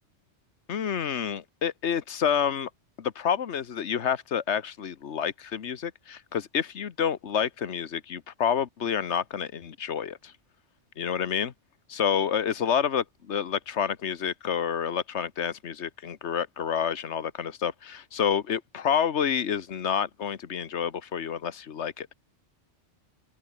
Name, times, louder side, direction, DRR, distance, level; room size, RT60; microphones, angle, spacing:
voice 1, 0.7-2.7 3.0-10.3 11.0-11.5 11.9-22.1, left 8 dB, 75° left, 1.4 m, -29 dB
open air
omnidirectional pair, 1.2 m